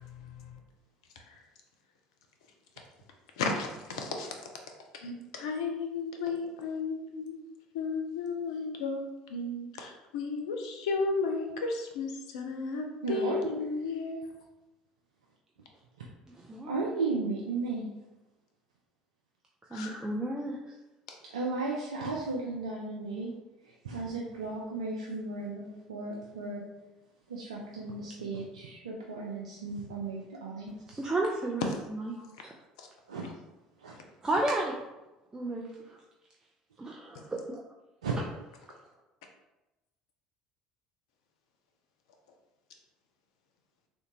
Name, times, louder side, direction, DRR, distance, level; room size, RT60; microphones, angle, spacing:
voice 1, 3.4-4.3 5.0-7.4 7.7-9.0 9.3-14.2 19.7-19.9 33.2-33.3, left 4 dB, 70° left, 0.5 m, -33 dB
voice 2, 13.0-13.5 16.7-17.9 21.3-23.3 23.8-26.6 27.3-31.0 33.1-33.2 33.8-33.9 38.0-38.1, right 3 dB, 80° right, 0.4 m, -35 dB
voice 3, 16.3-16.7 19.7-20.6 31.0-31.6 31.9-32.5 34.2-34.7 35.3-36.0 36.8-37.6, right 2 dB, 20° right, 0.4 m, -32 dB
3.6 x 2.2 x 2.9 m
figure-of-eight pair, 60°, 3 cm